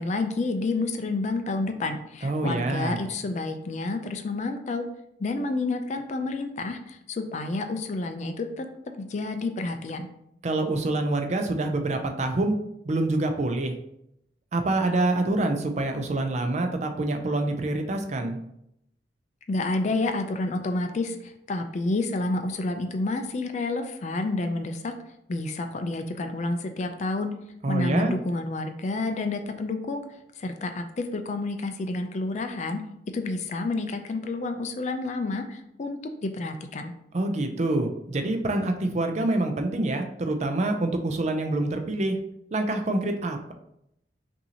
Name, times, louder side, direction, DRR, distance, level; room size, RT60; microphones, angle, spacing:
voice 1, 0.0-4.9 5.2-8.7 9.0-10.1 19.5-24.9 25.3-27.3 27.7-32.8 33.1-36.9, left 2 dB, 40° left, 7 dB, 0.4 m, -29 dB
voice 2, 2.2-3.0 10.4-12.5 12.9-13.8 14.5-18.4 27.6-28.1 37.1-42.2 42.5-43.5, right 2 dB, 40° right, 6 dB, 0.4 m, -26 dB
5.6 x 2.7 x 2.8 m, 0.77 s
head